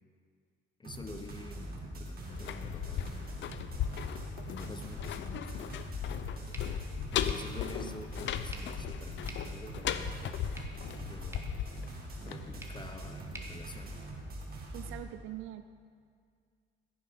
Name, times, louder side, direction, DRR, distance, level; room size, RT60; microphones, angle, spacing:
voice 1, 0.8-3.5 4.5-5.8 7.1-10.2 10.9-11.5 12.2-14.0, left 2 dB, 25° left, 7 dB, 0.8 m, -47 dB
sound 1, 0.8-15.0, right 1 dB, 50° right, 2.2 m, -43 dB
sound 2, 2.2-13.1 13.4-13.5, left 10 dB, 70° left, 0.6 m, -37 dB
sound 3, 6.5-14.6, right 1 dB, 15° right, 1.5 m, -53 dB
voice 2, 14.7-15.6, right 14 dB, 90° right, 10 dB, 0.5 m, -42 dB
15.5 x 6.8 x 5.2 m, 2.1 s
cardioid pair, 90°, 20 cm